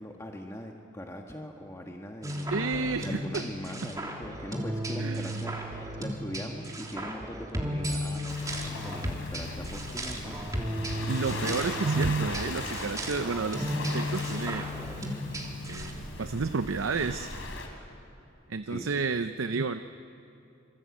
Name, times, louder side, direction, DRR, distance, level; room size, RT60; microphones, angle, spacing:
voice 1, 0.0-10.5 18.6-19.1, equal, 15° left, 1 dB, 1.5 m, -41 dB
sound 1, 2.2-15.9, equal, 20° right, 3.1 m, -34 dB
voice 2, 2.5-3.4 5.0-5.5 11.1-14.7 15.6-17.3 18.5-19.8, right 4 dB, 90° right, 10 dB, 0.7 m, -31 dB
Waves surf, 8.3-17.7, left 2 dB, 80° left, 3.7 m, -39 dB
26.5 x 25.0 x 8.5 m, 2.9 s
head